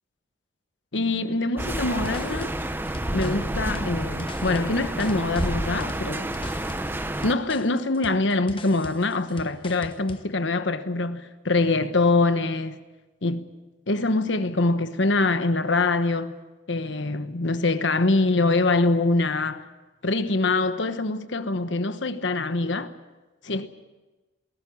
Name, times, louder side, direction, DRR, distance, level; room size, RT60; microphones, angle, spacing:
voice 1, 0.9-2.5 3.1-6.3 7.2-12.7 13.2-13.5 13.9-16.3 16.7-19.6 20.0-22.9 23.4-23.7, left 2 dB, 70° left, 1.2 m, -24 dB
sound 1, 1.6-10.3, left 2 dB, 25° left, 0.9 m, -43 dB
sound 2, 1.6-7.3, right 1 dB, 10° right, 0.8 m, -29 dB
21.0 x 18.0 x 8.5 m
head